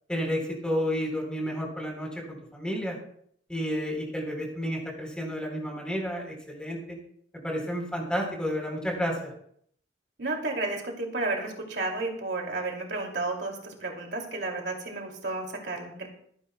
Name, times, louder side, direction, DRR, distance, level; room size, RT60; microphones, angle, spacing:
voice 1, 0.1-3.0 3.5-7.0 7.4-9.3, equal, 5° left, 0 dB, 4.0 m, -31 dB
voice 2, 10.2-16.1, right 2 dB, 65° right, 1 dB, 2.8 m, -32 dB
26.0 x 10.0 x 2.3 m, 0.64 s
head